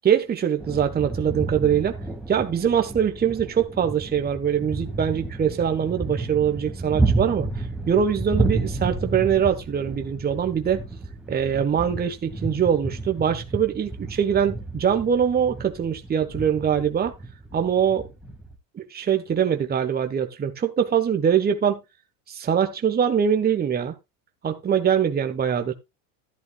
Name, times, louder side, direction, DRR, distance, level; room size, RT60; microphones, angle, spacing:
voice 1, 0.0-2.0 2.3-10.8 11.3-17.1 17.5-18.1 18.9-21.8 22.3-23.9 24.4-25.7, right 8 dB, 20° right, 1.2 m, -23 dB
sound 1, 0.6-18.5, right 3 dB, 5° right, 2.1 m, -31 dB
12.0 x 11.0 x 2.4 m
supercardioid pair, 105°, 44 cm